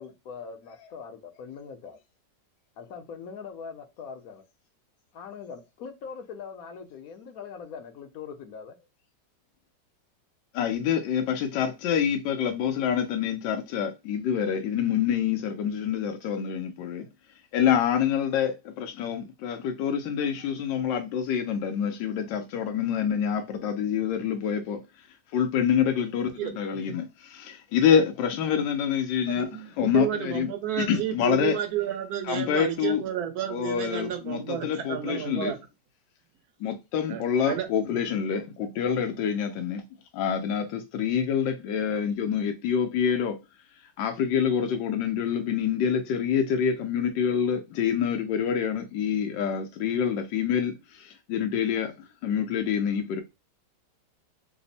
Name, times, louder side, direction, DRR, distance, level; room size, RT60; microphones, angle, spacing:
voice 1, 0.0-2.0 2.8-4.4 5.1-8.7, left 6 dB, 65° left, 1.0 m, -41 dB
voice 2, 10.5-17.1 17.5-24.8 25.3-29.5 29.8-30.5 30.8-31.6 32.3-33.0 33.5-35.5 36.6-39.8 40.1-43.4 44.0-51.9 52.2-53.2, left 8 dB, 85° left, 1.3 m, -26 dB
voice 3, 29.3-35.6 37.1-37.7, right 10 dB, 65° right, 1.2 m, -31 dB
3.4 x 2.0 x 3.9 m
omnidirectional pair, 1.9 m